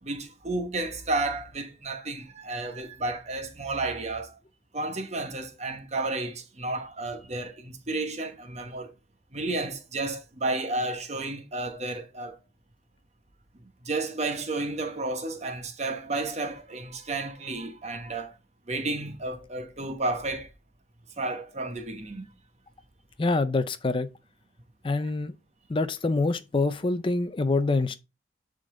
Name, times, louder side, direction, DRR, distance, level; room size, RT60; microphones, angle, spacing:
voice 1, 0.0-4.3 4.7-8.9 9.3-12.4 13.8-18.4 18.7-20.5 21.2-22.3, right 2 dB, 35° right, 1.0 m, -32 dB
voice 2, 23.2-24.1 24.8-25.3 25.7-28.0, left 3 dB, 25° left, 0.4 m, -25 dB
9.8 x 3.9 x 3.7 m
head